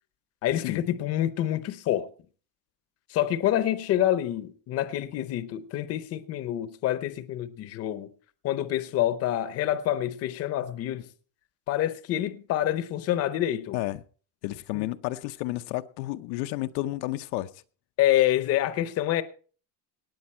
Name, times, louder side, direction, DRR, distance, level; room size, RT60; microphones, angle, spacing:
voice 1, 0.4-2.1 3.1-8.1 8.4-11.1 11.7-13.8 14.7-14.9 18.0-19.2, left 12 dB, 40° left, 0.8 m, -27 dB
voice 2, 14.4-17.5, left 17 dB, 75° left, 0.7 m, -31 dB
18.5 x 8.3 x 4.4 m
cardioid pair, 170°, 40 cm